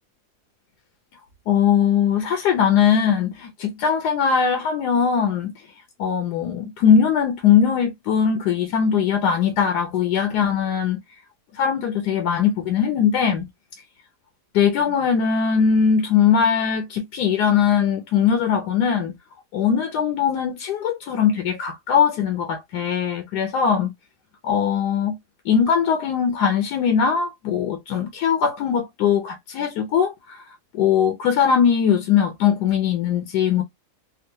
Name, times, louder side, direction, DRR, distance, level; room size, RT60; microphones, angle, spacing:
voice 1, 1.5-5.5 6.0-11.0 11.5-13.4 14.5-19.1 19.5-23.9 24.4-25.1 25.4-30.4 30.7-33.6, left 7 dB, 80° left, 1.2 m, -20 dB
3.6 x 2.1 x 2.7 m
omnidirectional pair, 1.7 m